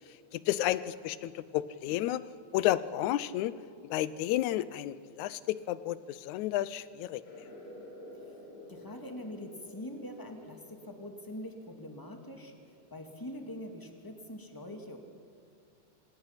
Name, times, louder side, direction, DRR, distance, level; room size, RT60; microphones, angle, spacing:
voice 1, 0.3-2.2 2.5-3.5 3.9-7.2, left 14 dB, 80° left, 16 dB, 2.0 m, -31 dB
sound 1, 7.2-13.4, left 1 dB, 60° left, 7.4 m, -51 dB
voice 2, 8.7-12.5 12.9-15.0, left 1 dB, 10° left, 4 dB, 1.4 m, -43 dB
26.0 x 19.5 x 5.8 m, 2.6 s
omnidirectional pair, 3.5 m